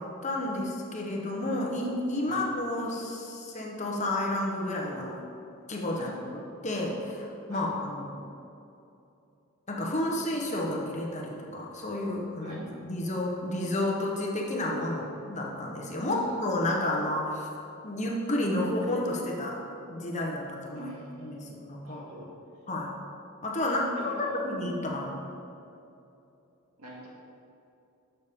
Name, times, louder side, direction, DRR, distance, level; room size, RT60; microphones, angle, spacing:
voice 1, 0.0-5.2 5.7-6.1 6.6-8.2 9.7-17.5 17.8-19.6 19.9-20.9 21.2-22.2 22.7-22.9 23.4-25.2, left 1 dB, 30° left, -1 dB, 1.1 m, -31 dB
voice 2, 16.1-16.8 20.8-22.3 23.6-24.4 26.8-27.1, right 1 dB, 75° right, -4 dB, 2.3 m, -45 dB
11.5 x 6.8 x 3.7 m, 2.7 s
head